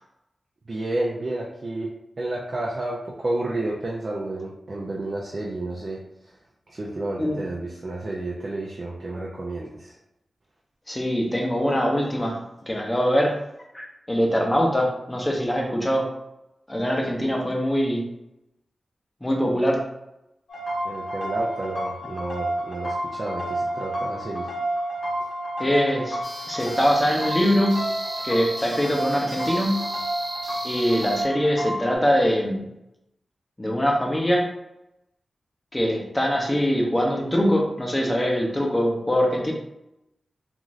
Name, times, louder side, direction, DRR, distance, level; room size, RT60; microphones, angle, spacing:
voice 1, 0.7-1.9 2.2-6.0 6.7-9.9 20.8-24.5, right 2 dB, 45° right, -4 dB, 0.4 m, -31 dB
voice 2, 10.9-13.4 13.7-16.1 16.7-18.1 19.2-19.8 25.6-26.2 26.5-27.9 28.2-29.9 30.6-32.7 33.6-34.5 35.7-39.5, equal, 15° left, 0 dB, 0.6 m, -23 dB
sound 1, 20.5-32.0, right 1 dB, 85° left, 0.7 m, -30 dB
sound 2, 26.2-31.2, right 1 dB, 75° right, 0.7 m, -35 dB
2.5 x 2.4 x 3.1 m, 0.86 s
wide cardioid pair, 125°, 0 cm